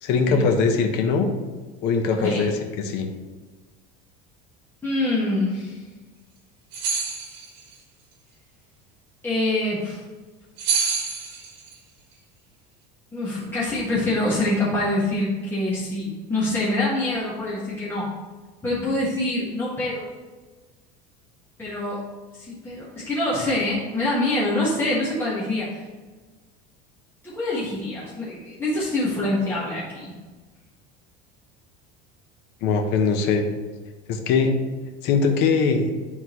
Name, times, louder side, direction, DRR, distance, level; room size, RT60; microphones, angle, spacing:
voice 1, 0.0-1.3 1.8-3.1 32.6-33.4 34.1-34.6 35.0-35.9, left 5 dB, 55° left, 5 dB, 1.0 m, -21 dB
voice 2, 4.8-5.8 9.2-10.0 13.1-18.1 18.6-20.1 21.6-22.0 22.3-25.8 27.2-30.0, left 1 dB, 10° left, -8 dB, 1.6 m, -25 dB
sound 1, 6.7-7.6 10.6-11.7, right 5 dB, 60° right, 1.6 m, -26 dB
11.5 x 3.9 x 3.1 m, 1.3 s
cardioid pair, 145°, 21 cm